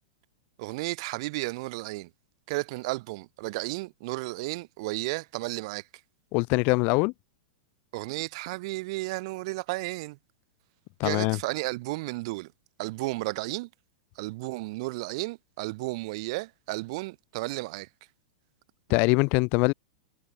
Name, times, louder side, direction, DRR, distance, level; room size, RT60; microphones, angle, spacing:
voice 1, 0.6-2.1 2.5-5.8 7.9-10.2 11.0-12.5 12.8-13.7 14.2-17.9, right 23 dB, 50° right, 0.8 m, -33 dB
voice 2, 6.3-7.1 11.0-11.4 18.9-19.7, left 30 dB, 45° left, 0.7 m, -23 dB
figure-of-eight pair, 100°, 4 cm